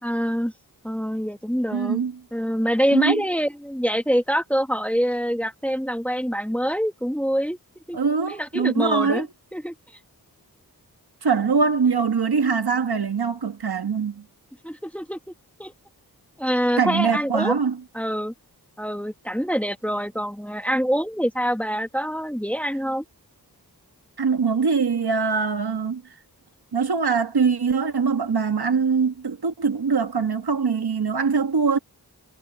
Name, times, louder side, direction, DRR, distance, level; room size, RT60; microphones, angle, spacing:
voice 1, 0.0-0.5 0.8-2.0 2.3-7.6 7.9-8.0 8.3-9.3 9.5-9.7 14.6-15.2 15.6-15.7 16.4-17.6 17.9-18.3 18.8-23.0, equal, 5° left, 1.4 m, -25 dB
voice 2, 1.7-2.2 2.9-3.2 7.9-9.3 11.2-14.2 16.8-17.8 24.2-26.0 26.7-31.8, right 5 dB, 75° right, 1.7 m, -22 dB
wide cardioid pair, 75°, 39 cm